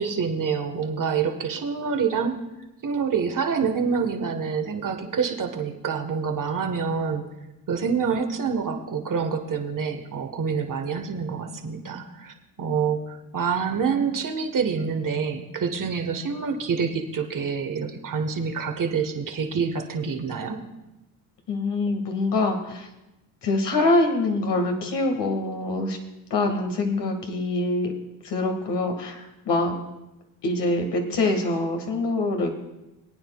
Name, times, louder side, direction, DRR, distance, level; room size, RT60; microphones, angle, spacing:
voice 1, 0.0-2.4 2.8-7.3 7.7-20.6, right 6 dB, 40° right, 5 dB, 1.5 m, -27 dB
voice 2, 21.5-22.9 23.4-26.0 26.3-27.9 28.2-29.8 30.4-32.5, left 2 dB, 55° left, 3 dB, 2.1 m, -24 dB
22.0 x 8.9 x 2.4 m, 0.97 s
hypercardioid pair, 60°, 49 cm